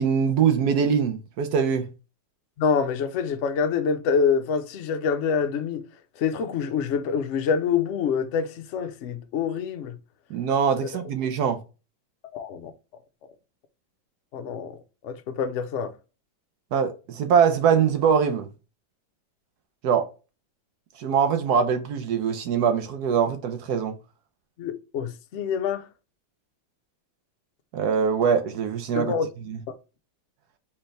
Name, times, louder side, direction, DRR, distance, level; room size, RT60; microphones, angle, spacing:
voice 1, 0.0-1.9 10.3-11.6 16.7-18.5 19.8-20.1 21.0-23.9 27.7-29.1 29.5-29.6, right 7 dB, 70° right, 1.1 m, -23 dB
voice 2, 2.6-5.8 6.2-10.0 10.8-10.9 12.3-12.7 14.3-14.8 15.0-15.9 24.6-25.9 28.9-29.3 29.7-29.8, left 6 dB, 65° left, 0.7 m, -26 dB
4.4 x 3.5 x 3.2 m
omnidirectional pair, 2.0 m